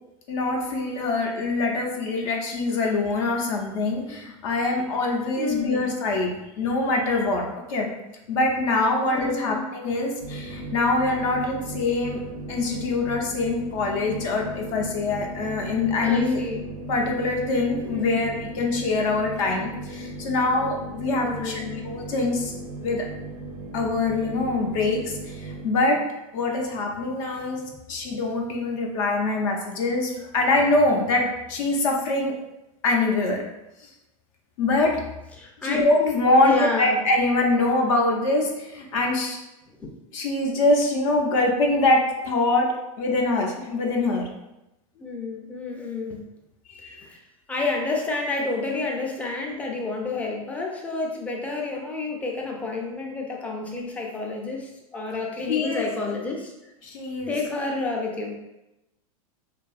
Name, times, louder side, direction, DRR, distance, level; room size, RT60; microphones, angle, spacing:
voice 1, 0.3-7.4 7.7-7.9 8.3-12.2 12.5-16.4 16.9-22.5 22.8-23.1 23.7-26.0 26.3-32.3 32.8-33.4 34.6-35.0 35.6-39.4 40.1-44.3 46.7-47.0 55.5-55.9 56.8-57.4, left 2 dB, 60° left, 0 dB, 0.6 m, -24 dB
voice 2, 5.4-5.9 9.1-9.6 16.0-16.6 17.9-18.2 21.2-21.9 35.4-35.9 36.4-37.0 39.8-39.9 45.0-46.2 46.8-47.2 47.5-56.5 57.3-58.4, left 3 dB, 10° left, 0 dB, 0.4 m, -29 dB
sound 1, 10.2-25.6, right 1 dB, 75° right, 0.5 m, -37 dB
2.6 x 2.3 x 2.3 m, 0.94 s
hypercardioid pair, 110°, 19 cm